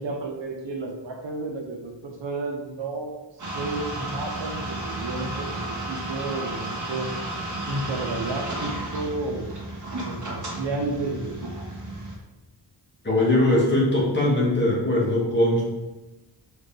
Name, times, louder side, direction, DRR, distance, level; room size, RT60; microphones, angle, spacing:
voice 1, 0.0-7.1 7.7-9.6 10.0-11.7, right 3 dB, 85° right, 1 dB, 1.3 m, -32 dB
sound 1, 3.4-12.2, right 1 dB, 40° right, 2.0 m, -33 dB
voice 2, 13.0-15.6, left 1 dB, 25° left, -5 dB, 2.6 m, -21 dB
5.1 x 5.1 x 5.3 m, 1.0 s
wide cardioid pair, 115°, 43 cm